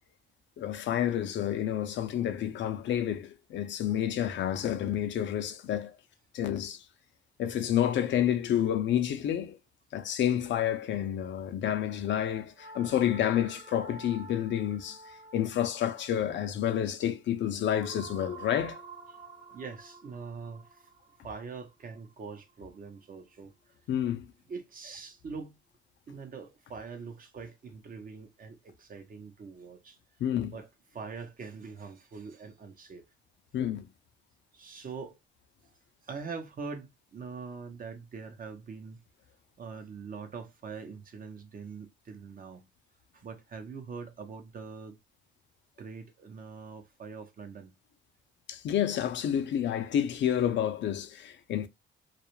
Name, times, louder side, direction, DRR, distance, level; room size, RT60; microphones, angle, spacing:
voice 1, 0.6-5.9 6.3-6.8 7.4-9.6 9.9-15.0 15.3-18.8 23.9-24.3 30.2-30.5 33.5-33.9 48.5-51.7, left 10 dB, 65° left, 0.5 m, -29 dB
sound 1, 12.6-22.8, right 3 dB, 30° right, 1.1 m, -50 dB
voice 2, 19.5-20.9 21.2-23.7 24.5-25.6 26.1-30.0 30.5-33.1 34.5-35.2 35.6-35.7 36.0-39.0 39.6-42.7 43.1-45.0 45.8-47.7, right 5 dB, 45° right, 0.7 m, -43 dB
2.3 x 2.0 x 2.9 m
cardioid pair, 90°, 20 cm